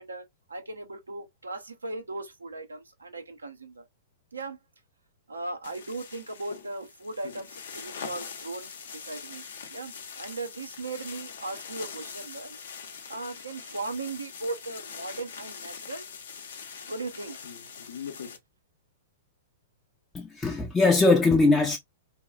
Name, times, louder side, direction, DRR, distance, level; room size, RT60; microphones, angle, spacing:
voice 1, 0.0-3.9 4.3-4.6 5.3-12.6 13.1-16.1 16.9-17.4, right 2 dB, 85° right, 0.6 m, -38 dB
sound 1, 5.6-18.4, left 6 dB, 65° left, 0.6 m, -42 dB
voice 2, 20.1-21.8, left 3 dB, 10° left, 0.4 m, -21 dB
2.8 x 2.3 x 2.3 m
figure-of-eight pair, 110°, 0 cm